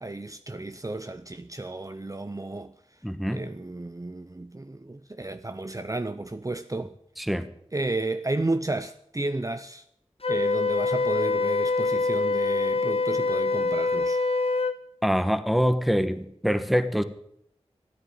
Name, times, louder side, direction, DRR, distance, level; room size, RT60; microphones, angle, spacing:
voice 1, 0.0-2.7 3.3-6.9 7.7-9.8 10.3-14.2, right 2 dB, 30° right, 0.6 m, -32 dB
voice 2, 3.0-3.5 7.2-7.5 15.0-17.0, equal, ahead, 1.3 m, -24 dB
Wind instrument woodwind instrument, 10.2-14.8, left 3 dB, 60° left, 1.2 m, -25 dB
14.0 x 10.0 x 9.4 m
wide cardioid pair, 40°, 11 cm